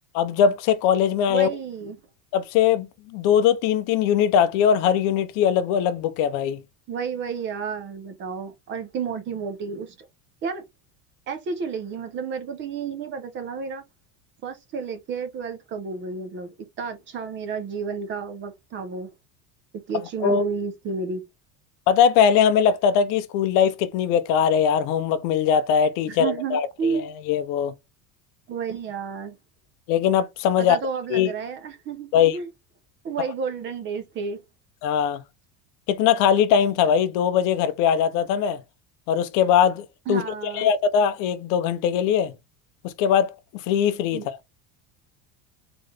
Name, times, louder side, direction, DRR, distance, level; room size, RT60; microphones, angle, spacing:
voice 1, 0.1-1.5 2.3-6.6 20.2-20.4 21.9-27.7 29.9-30.8 31.1-31.3 32.1-32.4 34.8-35.2 35.9-38.6 39.1-40.2 40.5-42.3 42.8-44.4, left 8 dB, 50° left, 0.6 m, -21 dB
voice 2, 1.3-2.0 6.9-10.1 10.4-10.6 11.3-13.8 14.4-19.1 19.7-21.2 26.0-27.1 28.5-29.4 30.6-32.5 33.0-34.4 40.1-40.7 44.1-44.3, right 5 dB, 30° right, 0.7 m, -31 dB
3.8 x 3.8 x 3.3 m
cardioid pair, 175°, 41 cm